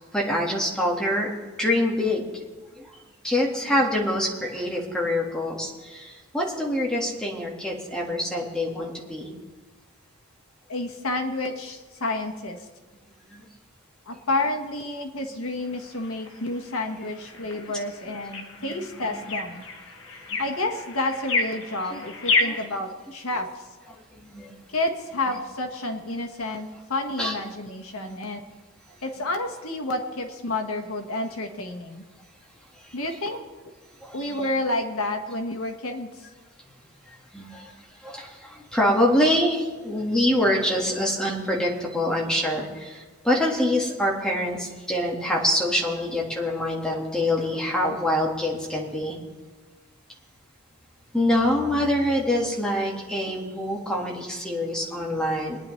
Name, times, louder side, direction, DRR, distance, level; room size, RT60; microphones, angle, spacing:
voice 1, 0.1-1.3 1.6-2.3 3.2-9.3 13.3-13.4 18.5-19.2 21.9-22.1 22.4-22.6 24.3-24.5 27.2-27.3 28.0-28.2 34.0-34.5 37.3-37.7 38.0-49.2 51.1-55.6, left 1 dB, 5° left, -2 dB, 1.7 m, -25 dB
voice 2, 10.7-12.6 14.1-19.6 20.4-23.5 24.7-28.4 29.0-32.0 32.9-33.4 34.1-36.1, left 2 dB, 80° left, 4 dB, 1.4 m, -30 dB
sound 1, 15.6-22.7, left 3 dB, 65° left, 1.1 m, -31 dB
22.0 x 9.9 x 3.2 m, 1.3 s
head